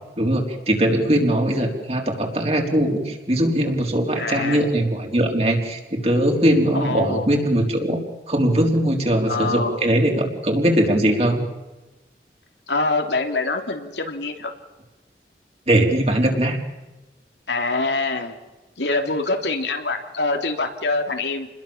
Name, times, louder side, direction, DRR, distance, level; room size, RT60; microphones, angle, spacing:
voice 1, 0.2-8.0 8.3-11.4 15.7-16.6, right 1 dB, 35° right, 1 dB, 4.2 m, -20 dB
voice 2, 4.2-4.7 6.7-7.3 9.3-9.8 12.7-14.5 17.5-18.4 18.8-21.5, left 3 dB, 85° left, 4 dB, 3.2 m, -25 dB
30.0 x 21.0 x 7.3 m, 1.1 s
head